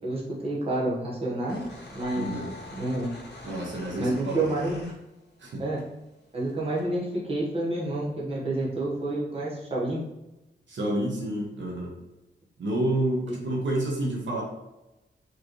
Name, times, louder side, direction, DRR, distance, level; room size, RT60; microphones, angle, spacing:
voice 1, 0.0-1.6 1.9-2.3 2.8-3.1 4.0-4.9 5.6-5.8 6.3-10.0 13.3-13.4, right 2 dB, 30° right, -5 dB, 1.2 m, -29 dB
sound 1, 1.4-5.5 5.8-6.8, left 1 dB, 60° left, 1.4 m, -46 dB
sound 2, 2.0-4.2, left 5 dB, 40° left, 1.1 m, -46 dB
voice 2, 2.2-2.5 3.4-4.5 5.4-5.6 10.7-11.9 12.6-14.4, right 1 dB, 80° right, -2 dB, 1.1 m, -29 dB
4.8 x 3.2 x 3.1 m, 0.97 s
wide cardioid pair, 155°, 19 cm